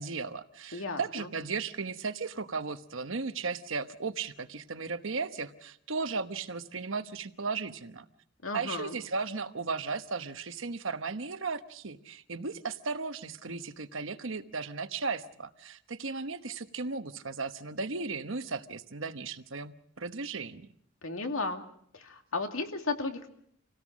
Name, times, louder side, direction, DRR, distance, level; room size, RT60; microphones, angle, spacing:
voice 1, 0.0-8.0 8.5-20.7, right 4 dB, 65° right, 10 dB, 1.1 m, -36 dB
voice 2, 0.7-1.3 8.4-9.0 21.0-21.6 21.9-23.3, left 3 dB, 80° left, 5 dB, 2.4 m, -34 dB
27.0 x 17.5 x 6.2 m, 0.69 s
head